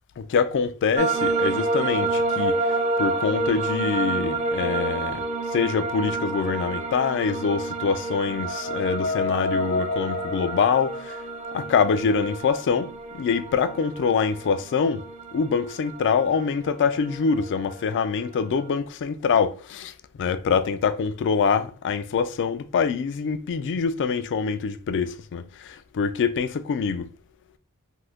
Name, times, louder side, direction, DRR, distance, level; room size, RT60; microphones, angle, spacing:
voice 1, 0.2-2.6 3.0-5.2 5.5-11.0 11.5-15.0 15.3-19.9 20.2-25.4 25.9-27.1, left 5 dB, 55° left, 0.3 m, -24 dB
sound 1, 0.9-18.7, right 3 dB, 30° right, 0.3 m, -29 dB
sound 2, 6.8-11.8, left 3 dB, 85° left, 0.7 m, -32 dB
2.6 x 2.5 x 3.5 m
head